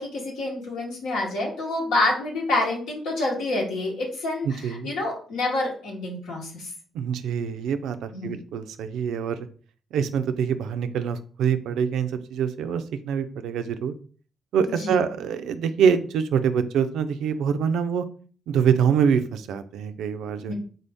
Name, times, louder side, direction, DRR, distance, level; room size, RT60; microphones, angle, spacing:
voice 1, 0.0-6.7 8.1-8.3 14.8-15.0 20.5-20.6, left 2 dB, 85° left, -2 dB, 1.2 m, -27 dB
voice 2, 4.4-4.9 6.9-9.4 9.9-13.9 14.5-18.0 18.5-20.5, right 7 dB, 80° right, 10 dB, 0.3 m, -25 dB
3.7 x 2.6 x 3.4 m, 0.43 s
supercardioid pair, 50°, 0 cm